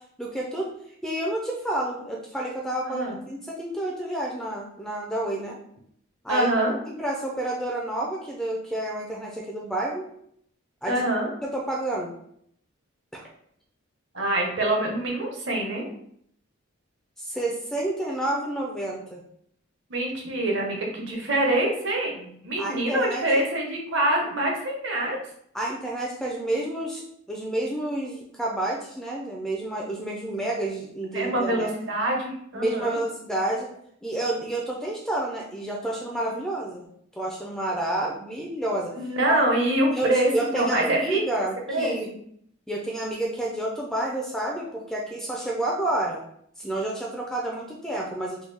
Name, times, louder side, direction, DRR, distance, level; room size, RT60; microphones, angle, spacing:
voice 1, 0.2-0.7 1.0-5.6 6.2-6.5 6.9-10.0 10.8-11.0 11.4-12.1 13.1-13.2 17.2-19.2 22.6-23.2 25.5-31.7 32.5-33.7 34.0-36.9 37.2-38.9 39.3-39.4 39.9-40.1 40.3-42.1 42.7-46.2 46.6-48.5, right 1 dB, ahead, -2 dB, 0.4 m, -29 dB
voice 2, 2.9-3.2 6.3-6.7 10.9-11.3 14.1-15.8 19.9-25.2 31.1-33.0 38.9-42.2, right 1 dB, 55° right, 0 dB, 0.8 m, -25 dB
3.5 x 2.2 x 3.3 m, 0.68 s
head